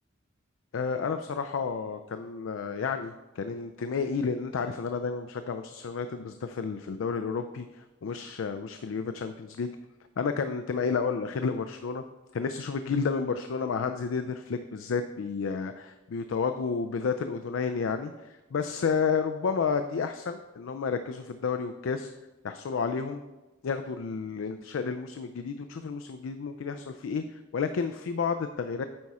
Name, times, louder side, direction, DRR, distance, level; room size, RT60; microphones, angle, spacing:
voice 1, 0.7-9.7 10.2-12.0 12.3-22.1 22.4-23.2 23.6-28.8, left 5 dB, 80° left, 8 dB, 0.4 m, -31 dB
8.8 x 4.7 x 4.2 m, 1.1 s
head